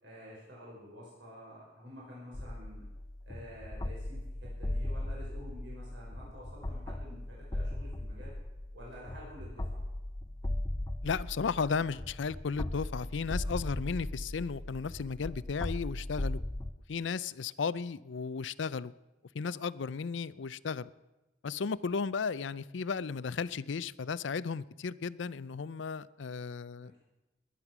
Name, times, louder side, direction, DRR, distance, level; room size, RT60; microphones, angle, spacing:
voice 1, 0.0-2.8 3.3-8.3 8.7-9.8 26.8-27.0, equal, 75° right, -4 dB, 5.4 m, -50 dB
sound 1, 2.3-16.7, left 1 dB, 20° left, 0.5 m, -38 dB
voice 2, 11.0-16.4 16.9-18.9 19.3-20.9 21.4-26.9, left 5 dB, 80° left, 18 dB, 0.5 m, -34 dB
20.5 x 9.8 x 6.0 m, 1.0 s
head